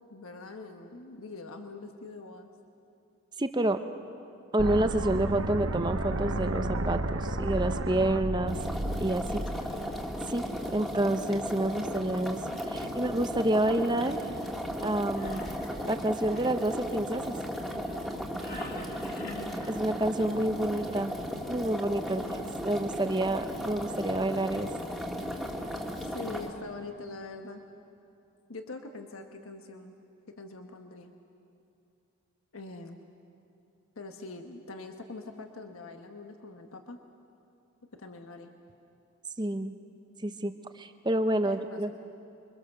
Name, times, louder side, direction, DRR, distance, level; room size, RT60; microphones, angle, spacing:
voice 1, 0.1-2.5 9.3-9.8 11.9-12.2 12.5-13.0 18.5-20.0 22.1-22.5 26.0-27.6 28.5-29.9 30.4-31.1 32.5-33.0 33.9-37.0 37.9-38.5 41.4-42.0, left 3 dB, 85° left, 5 dB, 1.3 m, -44 dB
voice 2, 3.4-3.8 4.5-8.6 9.0-9.4 10.3-10.5 10.7-12.4 12.7-14.2 14.8-15.4 15.9-17.2 19.7-21.1 21.5-24.7 39.4-39.8 40.2-42.0, right 1 dB, 20° right, 9 dB, 0.8 m, -28 dB
sound 1, 4.6-10.6, right 2 dB, 85° right, 1.1 m, -32 dB
sound 2, 8.5-26.5, equal, ahead, 1.8 m, -35 dB
Engine, 15.1-16.7 18.4-19.7, left 1 dB, 45° left, 3.0 m, -45 dB
27.5 x 23.5 x 6.8 m, 2.6 s
head